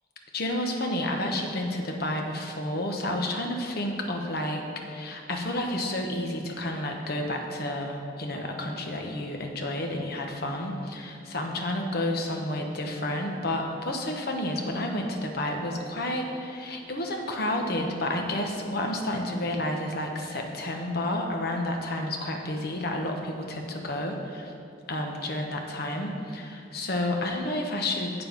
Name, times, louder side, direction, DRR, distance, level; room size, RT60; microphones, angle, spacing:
voice 1, 0.3-24.5 24.9-28.1, left 1 dB, 55° left, 2 dB, 1.1 m, -30 dB
7.9 x 7.0 x 5.3 m, 2.3 s
head